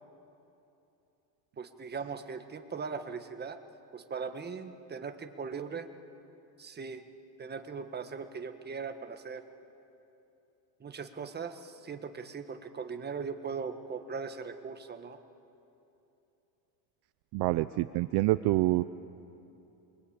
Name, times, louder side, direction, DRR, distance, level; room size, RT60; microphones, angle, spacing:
voice 1, 1.6-3.6 3.9-5.9 6.6-7.0 7.4-9.4 10.8-15.2, right 5 dB, 20° right, 7 dB, 1.5 m, -39 dB
voice 2, 17.3-18.8, right 18 dB, 55° right, 13 dB, 0.7 m, -27 dB
28.5 x 22.5 x 8.7 m, 3.0 s
cardioid pair, 130°, 47 cm